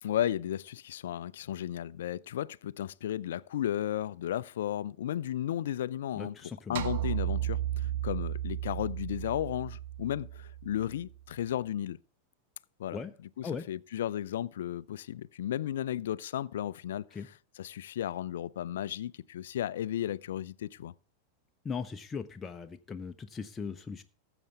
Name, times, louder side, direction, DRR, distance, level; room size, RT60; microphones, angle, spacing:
voice 1, 0.0-6.4 6.7-12.0 12.8-13.0 13.4-17.1 17.6-20.9, left 11 dB, 60° left, 0.4 m, -34 dB
voice 2, 6.2-6.9 12.9-13.1 13.4-13.7 17.1-17.3 21.6-24.0, left 5 dB, 15° left, 0.8 m, -39 dB
sound 1, 6.8-11.2, right 13 dB, 55° right, 1.2 m, -34 dB
19.5 x 8.0 x 3.5 m
figure-of-eight pair, 90°, 0 cm